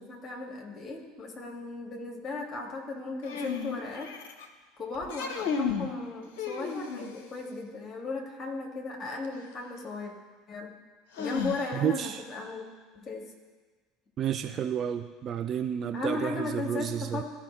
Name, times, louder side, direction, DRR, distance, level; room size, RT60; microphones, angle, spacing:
voice 1, 0.0-4.1 4.8-10.1 10.5-10.7 11.2-12.7 12.9-13.3 15.9-17.2, left 3 dB, 30° left, 1 dB, 1.9 m, -36 dB
sound 1, 3.2-4.4 5.0-5.9 6.4-7.3 9.2-9.3 11.1-12.0, left 6 dB, 60° left, 0.8 m, -33 dB
voice 2, 11.8-12.2 14.2-17.2, right 9 dB, 35° right, 9 dB, 0.4 m, -31 dB
14.5 x 5.0 x 3.1 m, 1.4 s
figure-of-eight pair, 70°, 0 cm